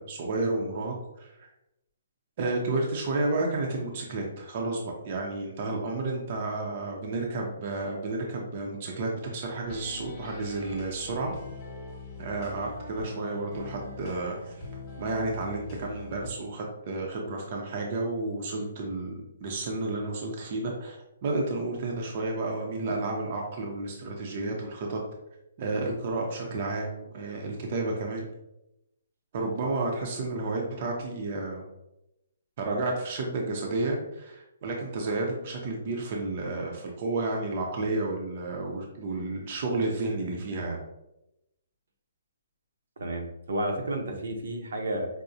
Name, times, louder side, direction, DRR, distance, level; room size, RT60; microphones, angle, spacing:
voice 1, 0.0-1.5 2.4-11.3 12.2-14.7 15.0-25.0 25.6-28.3 29.3-31.7 32.6-40.8, right 2 dB, 40° right, 0 dB, 0.5 m, -31 dB
sound 1, 9.6-16.3, left 3 dB, 25° left, 0.9 m, -42 dB
voice 2, 43.0-45.1, right 1 dB, 75° right, 2 dB, 0.7 m, -31 dB
4.7 x 2.0 x 2.6 m, 0.87 s
hypercardioid pair, 165°, 0 cm